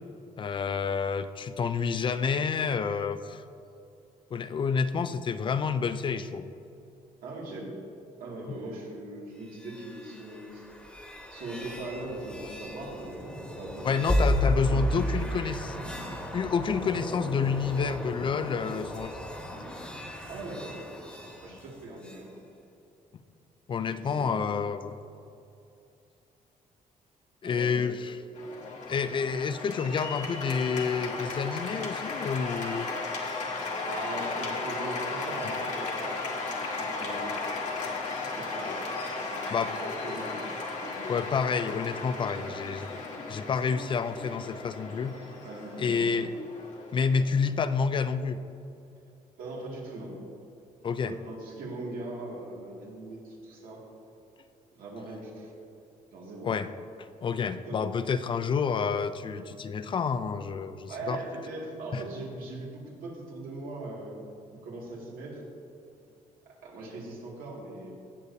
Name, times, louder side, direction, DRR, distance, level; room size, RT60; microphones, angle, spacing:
voice 1, 0.4-3.4 4.3-6.5 13.8-15.8 16.3-19.3 23.7-25.0 27.4-28.2 28.9-32.9 35.4-35.5 39.5-39.7 41.1-42.9 43.3-45.2 45.8-46.3 46.9-48.4 50.8-51.1 56.4-56.7 57.2-61.2 61.9-62.0, left 6 dB, 35° left, 11 dB, 0.4 m, -29 dB
voice 2, 7.2-7.7 8.2-10.6 11.3-14.0 14.6-15.3 20.3-20.8 21.4-22.4 23.8-24.5 27.4-27.8 28.9-29.0 33.9-36.1 36.5-37.4 38.2-40.3 40.8-41.0 42.3-42.5 45.4-46.1 49.4-50.1 51.0-53.8 54.7-55.5 56.1-56.5 57.7-57.8 60.9-64.2 64.5-65.4 66.5-67.9, right 2 dB, 85° right, -3 dB, 2.3 m, -40 dB
sound 1, 9.4-22.3, equal, 5° left, 1.3 m, -34 dB
Cheering / Applause, 28.3-47.6, left 3 dB, 55° left, 1.5 m, -35 dB
17.0 x 6.7 x 2.8 m, 2.6 s
cardioid pair, 145°, 14 cm